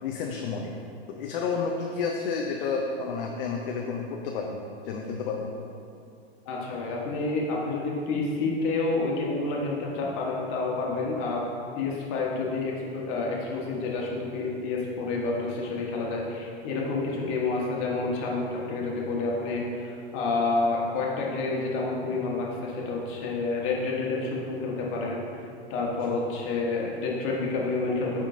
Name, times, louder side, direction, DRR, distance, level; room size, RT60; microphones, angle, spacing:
voice 1, 0.0-0.8 1.1-5.5 26.1-26.2, left 5 dB, 55° left, 0 dB, 0.6 m, -31 dB
voice 2, 6.5-11.4 11.8-25.4 25.7-28.2, left 3 dB, 40° left, -3 dB, 1.3 m, -29 dB
9.8 x 3.7 x 2.6 m, 2.5 s
hypercardioid pair, 115°, 33 cm